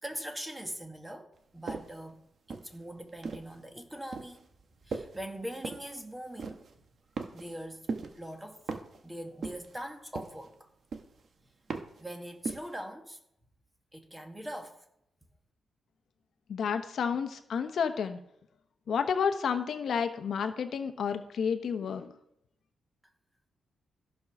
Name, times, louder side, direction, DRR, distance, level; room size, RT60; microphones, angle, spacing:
voice 1, 0.0-1.3 1.5-2.2 2.5-4.5 4.8-6.6 7.3-7.9 8.2-8.6 9.0-10.7 12.0-13.2 13.9-14.8, equal, 10° right, 1.4 m, -42 dB
sound 1, 1.7-2.0 2.5-3.6 4.1-4.4 4.9-5.2 5.6-5.9 6.4-6.7 7.2-7.6 7.9-8.2 8.7-9.0 9.4-9.8 10.1-10.5 10.9-11.3 11.7-12.0 12.4-12.7, right 4 dB, 45° right, 1.1 m, -38 dB
voice 2, 16.5-18.2 18.9-22.1, left 6 dB, 55° left, 0.9 m, -30 dB
14.5 x 5.4 x 5.9 m
wide cardioid pair, 155°, 0 cm